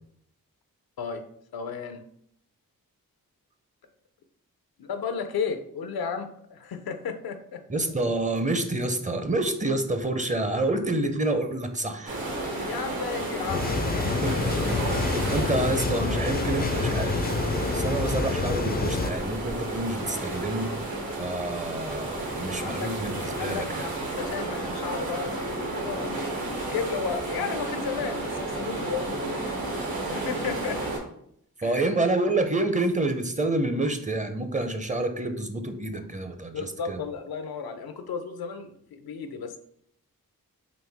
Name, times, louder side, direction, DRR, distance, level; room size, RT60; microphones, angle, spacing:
voice 1, 1.5-2.0 4.8-7.6 12.6-14.2 22.6-22.9 23.3-29.4 30.1-30.9 31.6-31.8 36.5-39.6, left 6 dB, 85° left, 8 dB, 0.5 m, -34 dB
voice 2, 7.7-12.2 14.2-14.7 15.3-17.2 17.7-20.7 21.1-23.9 31.6-37.0, right 2 dB, 20° right, 7 dB, 0.5 m, -28 dB
sound 1, 12.1-31.0, right 2 dB, 75° right, 1.4 m, -32 dB
sound 2, 13.5-19.1, left 4 dB, 30° left, 0.4 m, -28 dB
4.1 x 2.7 x 3.4 m, 0.69 s
cardioid pair, 50°, 36 cm